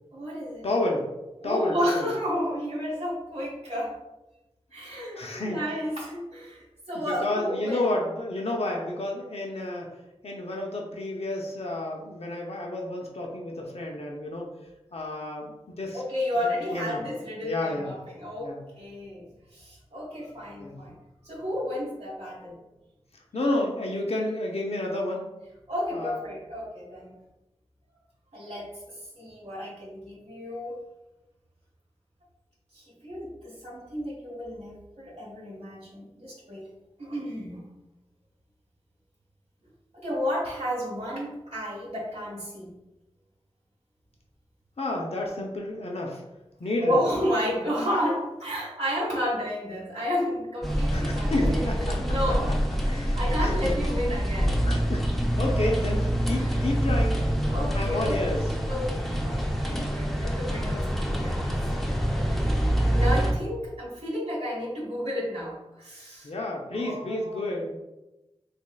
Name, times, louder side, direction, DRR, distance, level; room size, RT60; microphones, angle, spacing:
voice 1, 0.1-0.7 1.4-3.9 4.7-7.9 15.9-19.3 19.5-21.0 21.2-22.6 25.7-27.1 28.3-28.7 29.2-30.8 32.7-36.7 37.0-37.6 39.9-42.7 46.8-52.5 52.9-54.6 56.3-56.5 57.5-58.3 58.7-61.4 62.9-66.3 66.7-67.5, equal, 90° right, -7 dB, 0.9 m, -32 dB
voice 2, 0.6-1.1 1.4-2.1 5.2-5.6 6.9-9.9 10.2-14.5 14.9-16.0 16.4-17.0 17.4-17.9 18.4-18.6 20.6-20.8 23.3-25.2 25.9-26.2 44.8-46.2 46.6-47.0 50.9-51.8 52.9-53.6 54.6-55.0 55.4-57.2 57.7-58.4 66.2-67.8, left 2 dB, 65° left, 0 dB, 0.6 m, -30 dB
sound 1, 50.6-63.3, equal, ahead, 0.6 m, -26 dB
3.6 x 3.3 x 2.2 m, 0.99 s
wide cardioid pair, 55°, 11 cm